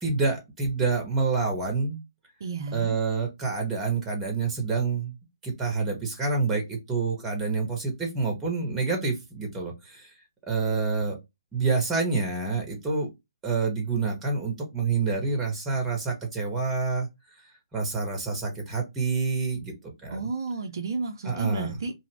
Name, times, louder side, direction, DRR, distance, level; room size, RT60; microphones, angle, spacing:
voice 1, 0.0-2.0 2.7-5.1 5.4-10.1 10.5-11.2 11.5-13.1 13.4-17.1 17.7-19.7 20.0-20.3 21.2-21.8, right 4 dB, 10° right, 1.1 m, -27 dB
voice 2, 2.4-3.0 20.1-21.9, right 4 dB, 55° right, 0.6 m, -32 dB
2.7 x 2.4 x 3.1 m
figure-of-eight pair, 135°, 2 cm